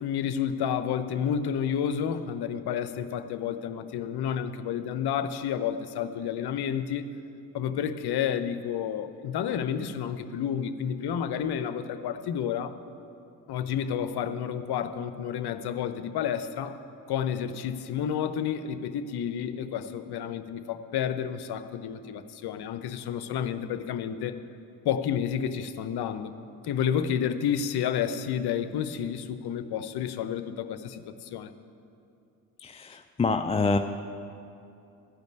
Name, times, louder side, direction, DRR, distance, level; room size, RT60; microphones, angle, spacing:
voice 1, 0.0-7.1 7.5-12.8 13.5-16.8 17.1-24.4 24.8-26.4 26.6-31.5, left 8 dB, 55° left, 10 dB, 0.8 m, -30 dB
voice 2, 32.6-33.8, left 4 dB, 15° left, 6 dB, 0.4 m, -26 dB
13.0 x 5.2 x 9.2 m, 2.6 s
hypercardioid pair, 50°, 47 cm